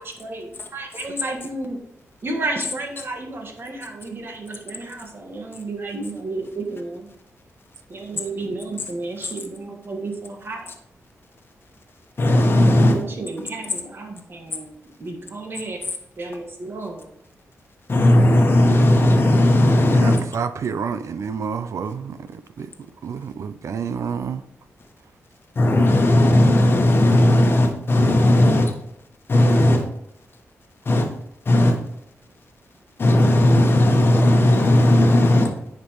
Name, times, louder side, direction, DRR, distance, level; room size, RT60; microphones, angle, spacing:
voice 1, 0.7-1.8 2.2-7.1 7.9-10.7 12.7-14.2 15.0-15.8 16.2-17.1, right 2 dB, 45° right, 1.6 m, -31 dB
voice 2, 12.2-13.0 17.9-20.2 25.5-28.7 29.3-29.8 30.8-31.1 31.4-31.8 33.0-35.5, left 1 dB, 45° left, 1.2 m, -16 dB
voice 3, 19.9-22.7 23.0-24.4, right 6 dB, 65° right, 0.4 m, -29 dB
9.5 x 5.2 x 3.1 m
wide cardioid pair, 105°, 5 cm